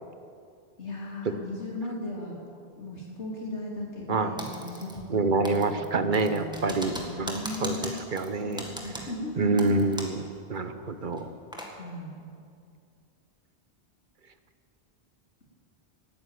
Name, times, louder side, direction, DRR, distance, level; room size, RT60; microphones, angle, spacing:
voice 1, 0.8-2.3 2.8-8.0 8.4-9.8 11.7-12.2, left 2 dB, 85° left, -3 dB, 3.7 m, -37 dB
Typing, 4.4-5.2 5.5-10.3 10.6-10.7 11.1-11.7, equal, 5° right, 1.8 m, -39 dB
voice 2, 5.1-8.6 9.4-10.2 10.5-11.3, right 3 dB, 50° right, 9 dB, 1.0 m, -27 dB
18.5 x 9.7 x 7.6 m, 2.4 s
omnidirectional pair, 1.1 m